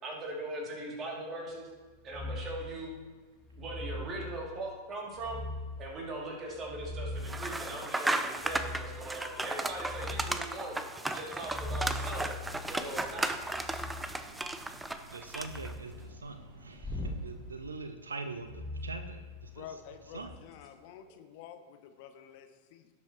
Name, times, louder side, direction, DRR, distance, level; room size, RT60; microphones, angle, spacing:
voice 1, 0.0-1.7 2.0-2.9 3.6-5.5 5.8-10.8 11.1-12.4 12.7-13.3, right 2 dB, 25° right, -2 dB, 2.7 m, -40 dB
sound 1, 2.1-2.7 3.5-4.2 5.1-5.8 6.5-7.5 8.4-9.0 9.5-10.4 11.3-14.1 15.4-15.9 16.8-17.3 18.4-19.7 20.1-20.4, left 1 dB, 10° left, 1.1 m, -40 dB
sound 2, 7.2-15.7, right 2 dB, 10° right, 0.6 m, -35 dB
sound 3, 12.2-17.7, equal, 45° right, 3.7 m, -55 dB
voice 2, 15.1-19.7 20.1-20.3, right 3 dB, 75° right, 8 dB, 0.6 m, -43 dB
voice 3, 19.5-22.9, left 9 dB, 45° left, 8 dB, 0.8 m, -49 dB
17.0 x 7.6 x 3.0 m, 1.4 s
figure-of-eight pair, 90°, 0 cm